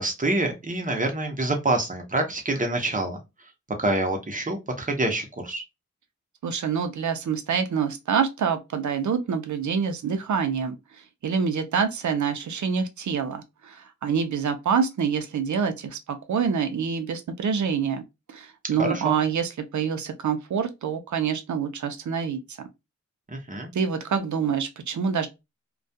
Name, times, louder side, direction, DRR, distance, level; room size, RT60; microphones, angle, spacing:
voice 1, 0.0-3.2 3.8-5.6 18.8-19.2 23.3-23.7, right 2 dB, 25° right, 0.7 m, -26 dB
voice 2, 6.4-18.0 18.3-22.6 23.7-25.3, right 6 dB, 70° right, 0.5 m, -26 dB
2.3 x 2.2 x 2.6 m
wide cardioid pair, 100°, 30 cm